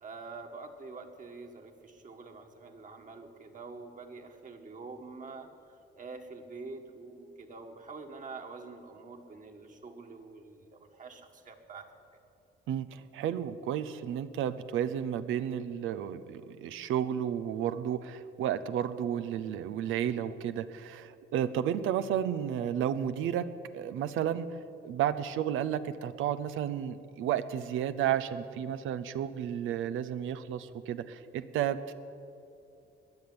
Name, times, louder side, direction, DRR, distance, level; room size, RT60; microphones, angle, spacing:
voice 1, 0.0-11.9, right 4 dB, 40° right, 4 dB, 1.9 m, -46 dB
voice 2, 12.7-23.5 23.7-24.5 24.8-31.9, right 10 dB, 85° right, 13 dB, 0.7 m, -32 dB
20.0 x 6.9 x 9.6 m, 2.7 s
cardioid pair, 90°, 20 cm